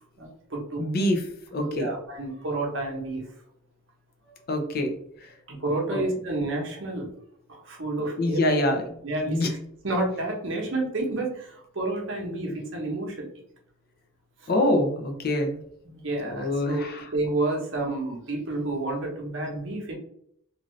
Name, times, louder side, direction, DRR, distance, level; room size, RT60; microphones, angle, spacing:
voice 1, 0.2-0.8 1.6-3.2 5.5-7.1 7.5-8.6 9.0-9.4 9.8-13.2 15.8-16.8 17.1-19.9, right 2 dB, 60° right, 0 dB, 0.8 m, -30 dB
voice 2, 0.8-1.2 1.5-1.9 4.5-5.0 5.2-5.3 5.9-6.0 8.2-9.5 14.5-15.6 16.2-17.1, left 1 dB, 45° left, 4 dB, 0.5 m, -25 dB
2.6 x 2.5 x 3.1 m, 0.69 s
head